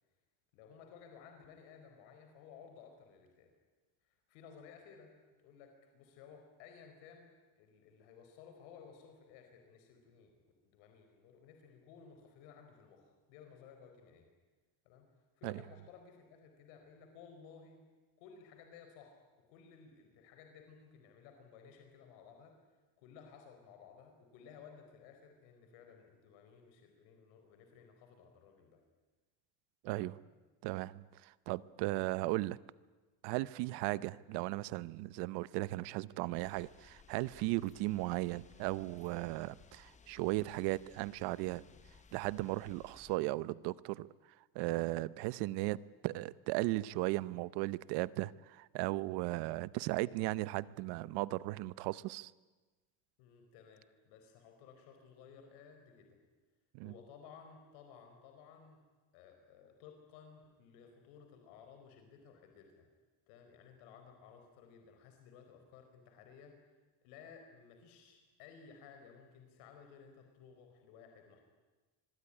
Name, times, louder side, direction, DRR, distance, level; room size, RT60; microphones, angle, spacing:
voice 1, 0.5-3.5 4.0-5.1 5.4-10.3 10.6-14.3 14.8-15.1 15.4-17.9 18.2-22.6 23.0-28.8 29.8-30.2 53.2-56.2 56.8-58.8 59.1-62.9 63.3-66.6 67.0-71.4, left 6 dB, 75° left, 5 dB, 4.6 m, -57 dB
voice 2, 30.6-32.6 33.2-41.6 42.1-44.1 44.5-52.3 56.7-56.9, right 19 dB, 60° right, 19 dB, 0.8 m, -36 dB
sound 1, 36.4-43.2, left 5 dB, 15° left, 1.0 m, -61 dB
25.5 x 22.0 x 9.9 m, 1.2 s
cardioid pair, 175°, 45 cm